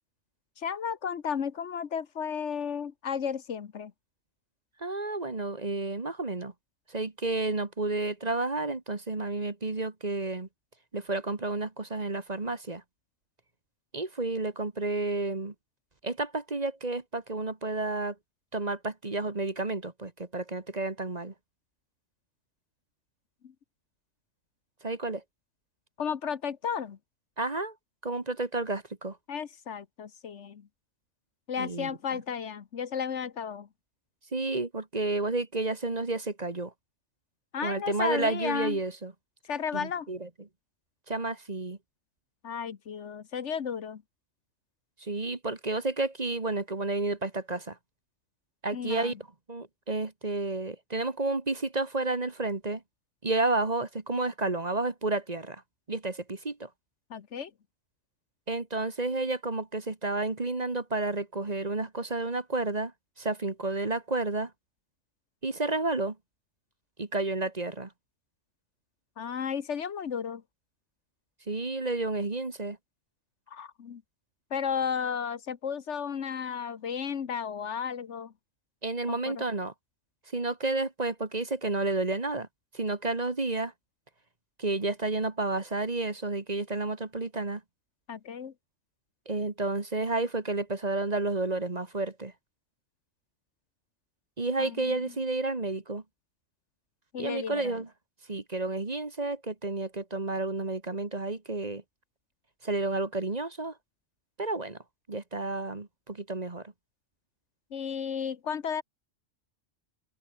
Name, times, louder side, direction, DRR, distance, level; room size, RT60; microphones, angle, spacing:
voice 1, 0.6-3.9 23.4-23.5 26.0-27.0 29.3-30.7 31.5-33.7 37.5-38.8 39.5-40.1 42.4-44.0 48.7-49.2 57.1-57.5 69.2-70.4 73.5-74.0 74.5-78.3 79.1-79.4 88.1-88.5 94.6-95.1 97.1-97.8 107.7-108.8, left 7 dB, 70° left, 1.4 m, -33 dB
voice 2, 4.8-6.5 6.9-10.5 10.9-12.8 13.9-15.5 16.0-18.2 18.5-21.3 24.8-25.2 27.4-27.7 28.0-29.2 31.6-32.2 34.3-36.7 37.6-39.1 39.7-40.3 41.1-41.8 45.0-47.8 48.6-49.2 49.5-52.8 53.2-55.6 55.9-56.7 58.5-62.9 63.2-64.5 65.4-66.2 67.0-67.9 71.5-72.8 78.8-79.7 80.3-82.5 82.7-83.7 84.6-87.6 89.3-92.3 94.4-96.0 97.2-97.9 98.3-101.8 102.6-103.7 104.4-104.8 105.1-106.7, right 2 dB, 35° right, 1.8 m, -31 dB
open air
omnidirectional pair, 1.3 m